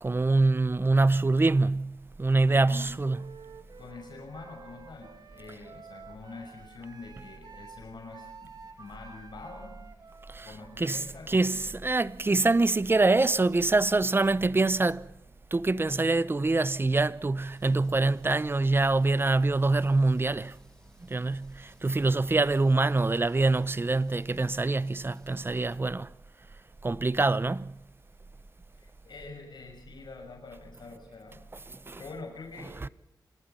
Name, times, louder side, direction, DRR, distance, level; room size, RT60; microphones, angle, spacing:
voice 1, 0.0-3.2 10.3-10.5 10.8-15.0 15.5-20.5 21.1-26.1 26.8-27.7 31.9-32.0 32.8-32.9, right 3 dB, 30° right, 0.8 m, -25 dB
voice 2, 2.4-2.9 3.8-9.8 10.4-11.6 28.7-31.5 32.0-32.7, left 3 dB, 65° left, 5.8 m, -45 dB
Wind instrument woodwind instrument, 3.0-12.8, right 5 dB, 55° right, 2.4 m, -51 dB
sound 1, 17.4-25.8, equal, 5° left, 5.0 m, -59 dB
26.5 x 20.0 x 5.6 m
cardioid pair, 75°, 8 cm